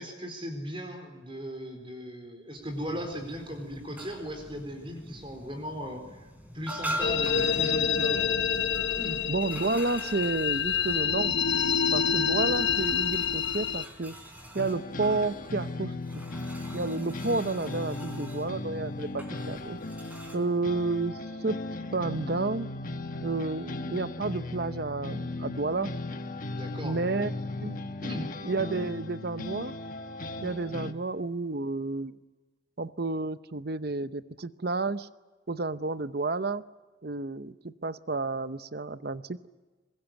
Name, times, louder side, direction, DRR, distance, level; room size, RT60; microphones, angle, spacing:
voice 1, 0.0-8.3 9.0-9.2 26.5-27.0 28.0-28.3, equal, 25° right, 4 dB, 4.2 m, -38 dB
sound 1, 2.5-20.4, equal, 10° right, 3.7 m, -44 dB
sound 2, 7.0-13.8, left 7 dB, 60° left, 0.9 m, -27 dB
voice 2, 9.3-11.4 11.9-14.2 14.5-15.9 16.7-19.8 20.3-21.6 21.9-22.7 23.2-25.9 26.8-27.3 27.6-27.9 28.4-29.7 30.4-32.2 32.8-35.1 35.5-36.6 37.0-39.4, right 3 dB, 50° right, 14 dB, 0.8 m, -31 dB
sound 3, 14.6-30.9, left 2 dB, 40° left, 1.3 m, -37 dB
23.0 x 21.5 x 9.2 m, 1.3 s
head